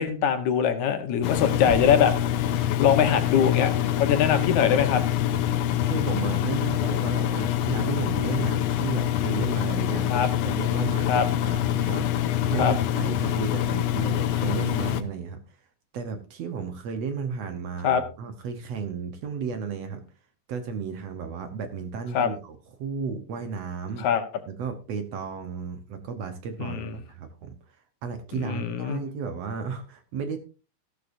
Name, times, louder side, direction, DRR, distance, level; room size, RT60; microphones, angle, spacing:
voice 1, 0.0-2.1 2.4-5.0 10.1-10.3 11.1-11.3 12.6-12.7 17.8-18.0 22.1-22.3 24.0-24.2 26.6-27.0 28.3-29.0, left 8 dB, 65° left, 8 dB, 2.3 m, -23 dB
Engine, 1.2-15.0, left 11 dB, 80° left, 1.5 m, -25 dB
sound 1, 1.7-4.2, right 3 dB, 85° right, 7.3 m, -38 dB
voice 2, 5.9-15.4 15.9-20.0 20.5-24.1 24.5-27.6 28.0-30.4, right 6 dB, 65° right, 8 dB, 1.8 m, -33 dB
14.0 x 12.0 x 2.6 m, 0.33 s
omnidirectional pair, 3.9 m